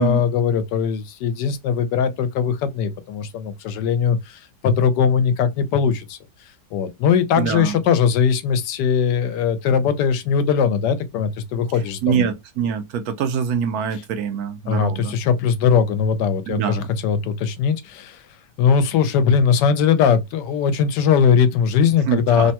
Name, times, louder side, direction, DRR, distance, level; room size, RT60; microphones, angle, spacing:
voice 1, 0.0-6.2 6.7-12.3 14.7-18.3 18.6-22.5, left 7 dB, 80° left, 1.2 m, -20 dB
voice 2, 7.4-7.8 12.0-15.1 16.5-16.9 22.1-22.5, right 7 dB, 70° right, 1.0 m, -24 dB
3.4 x 2.2 x 2.7 m
omnidirectional pair, 1.8 m